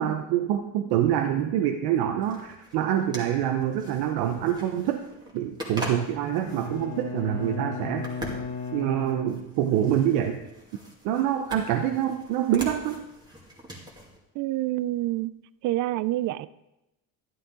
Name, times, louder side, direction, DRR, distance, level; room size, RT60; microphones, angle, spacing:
voice 1, 0.0-5.0 5.3-8.1 8.7-10.4 11.0-13.0, right 10 dB, 75° right, 6 dB, 0.9 m, -26 dB
sound 1, 2.2-14.2, equal, 10° right, 2.3 m, -42 dB
Bowed string instrument, 6.5-10.0, left 4 dB, 85° left, 2.1 m, -36 dB
voice 2, 14.4-15.3 15.6-16.5, right 16 dB, 50° right, 18 dB, 0.5 m, -27 dB
11.5 x 11.0 x 3.8 m, 0.92 s
cardioid pair, 135°, 39 cm